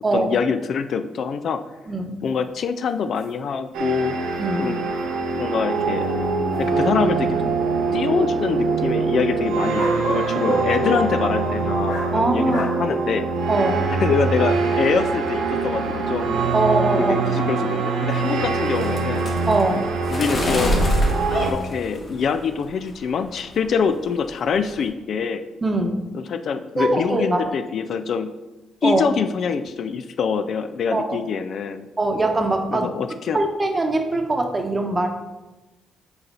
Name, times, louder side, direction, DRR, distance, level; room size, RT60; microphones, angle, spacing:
voice 1, 0.1-1.6 2.2-4.2 4.6-4.8 5.3-6.1 6.6-7.5 7.9-13.2 14.0-16.4 17.0-19.3 20.1-20.8 21.4-25.4 26.1-28.3 28.8-31.9 32.7-33.4, left 6 dB, 60° left, 10 dB, 0.3 m, -25 dB
voice 2, 1.9-2.2 4.4-4.7 10.4-10.5 12.1-12.7 13.5-13.9 16.5-17.1 19.5-19.9 25.6-26.0 26.8-27.4 28.8-29.1 30.9-31.2 32.0-32.9 33.3-35.1, right 2 dB, 25° right, 4 dB, 0.9 m, -22 dB
sound 1, 2.3-2.4 2.9-3.0 3.1-3.3 4.3-4.4 5.2-5.3 6.0-7.0 9.7-10.7 11.8-12.1 12.5-12.7, equal, 90° left, 1.8 m, -29 dB
sound 2, 3.7-21.5, right 4 dB, 85° right, 0.9 m, -23 dB
sound 3, 18.1-22.5 22.9-23.4 23.7-24.0 24.2-24.9, equal, 45° left, 1.4 m, -26 dB
6.7 x 4.0 x 4.3 m, 1.1 s
cardioid pair, 90°, 0 cm